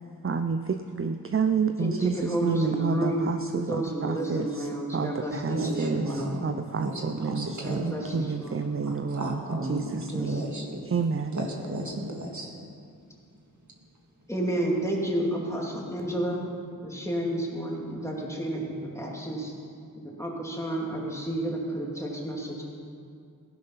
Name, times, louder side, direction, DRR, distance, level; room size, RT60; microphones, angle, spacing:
voice 1, 0.2-10.4 10.9-11.4, right 5 dB, 35° right, 8 dB, 0.5 m, -29 dB
voice 2, 1.8-3.3 3.7-6.4 7.6-8.6 10.1-10.3 14.3-16.4 16.8-19.5 20.0-22.6, right 1 dB, 10° left, -3 dB, 2.7 m, -31 dB
voice 3, 5.3-6.5 6.8-7.9 8.8-10.8 11.3-12.5 13.7-13.8, right 1 dB, 50° right, 0 dB, 2.0 m, -34 dB
16.0 x 10.5 x 5.7 m, 2.4 s
wide cardioid pair, 65°, 36 cm